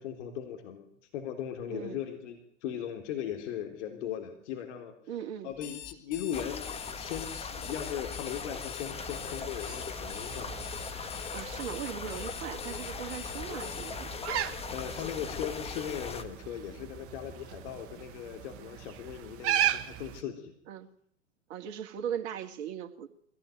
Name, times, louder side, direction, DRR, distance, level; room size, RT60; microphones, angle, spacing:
voice 1, 0.0-4.9 5.4-10.5 14.7-20.5, left 9 dB, 60° left, 5 dB, 3.8 m, -38 dB
voice 2, 1.7-2.0 5.1-5.5 11.3-14.1 20.7-20.9 21.5-23.1, right 9 dB, 55° right, 6 dB, 2.5 m, -38 dB
Alarm, 5.5-13.9, left 12 dB, 30° left, 1.8 m, -45 dB
sound 1, 6.3-16.2, left 5 dB, 15° left, 1.9 m, -39 dB
sound 2, 8.9-20.2, right 11 dB, 35° right, 1.7 m, -38 dB
22.5 x 17.5 x 9.3 m, 0.70 s
hypercardioid pair, 110°, 40 cm